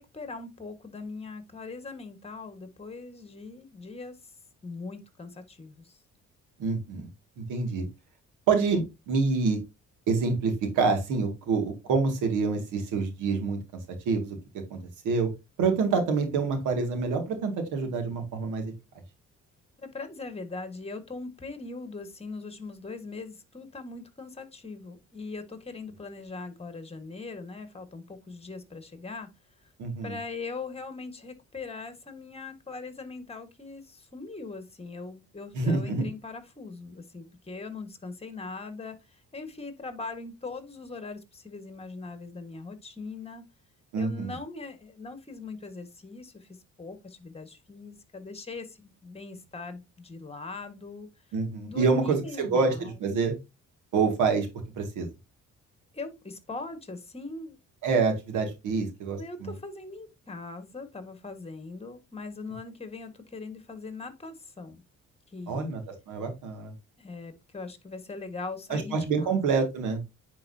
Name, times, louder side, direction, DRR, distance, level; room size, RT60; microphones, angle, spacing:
voice 1, 0.0-4.2 4.6-5.9 19.8-29.3 30.0-39.0 39.3-43.4 44.0-46.5 46.8-51.1 51.6-53.0 55.9-57.6 59.2-64.8 65.3-65.7 67.0-69.3, left 3 dB, 20° left, 1.6 m, -40 dB
voice 2, 6.6-7.1 7.4-7.9 8.5-9.6 10.1-13.6 14.1-14.4 14.7-14.8 15.0-15.3 15.6-18.7 29.8-30.2 35.5-36.1 43.9-44.4 51.3-53.3 53.9-54.5 54.8-55.1 57.8-59.5 65.5-66.7 68.7-70.0, right 4 dB, 90° right, 2.3 m, -27 dB
9.6 x 4.5 x 2.8 m
cardioid pair, 90°, 30 cm